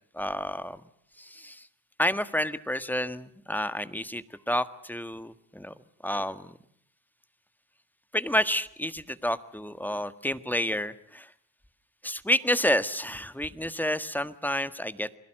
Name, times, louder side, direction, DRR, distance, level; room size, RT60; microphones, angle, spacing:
voice 1, 0.1-0.8 1.2-1.7 2.0-5.7 6.0-6.6 8.1-11.3 12.0-15.2, left 1 dB, 5° left, 12 dB, 1.6 m, -29 dB
29.0 x 21.0 x 7.8 m, 0.66 s
supercardioid pair, 65°, 43 cm